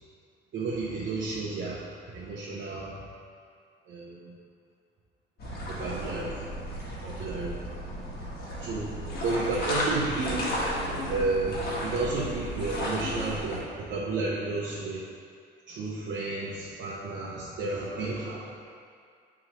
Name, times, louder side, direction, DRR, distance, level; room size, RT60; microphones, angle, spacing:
voice 1, 0.5-2.9 3.9-4.3 5.7-6.4 7.0-7.5 8.6-8.9 9.2-10.5 11.1-15.0 15.7-18.5, right 3 dB, 60° right, -7 dB, 1.0 m, -32 dB
sound 1, 5.4-13.6, equal, 50° left, 1.6 m, -33 dB
11.0 x 3.6 x 3.1 m, 2.2 s
cardioid pair, 100°, 21 cm